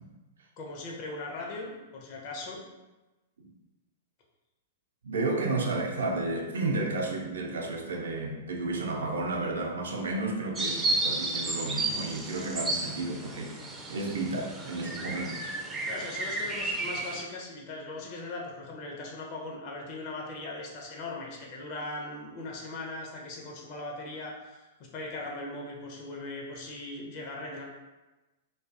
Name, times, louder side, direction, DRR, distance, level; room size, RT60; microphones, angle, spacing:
voice 1, 0.6-2.6 15.9-27.6, left 2 dB, 45° left, -1 dB, 0.6 m, -39 dB
voice 2, 5.0-13.5 13.9-15.5, right 2 dB, 75° right, 1 dB, 0.4 m, -32 dB
sound 1, 10.6-17.2, right 2 dB, 15° right, 0.4 m, -32 dB
2.5 x 2.3 x 2.4 m, 1.1 s
hypercardioid pair, 105°, 0 cm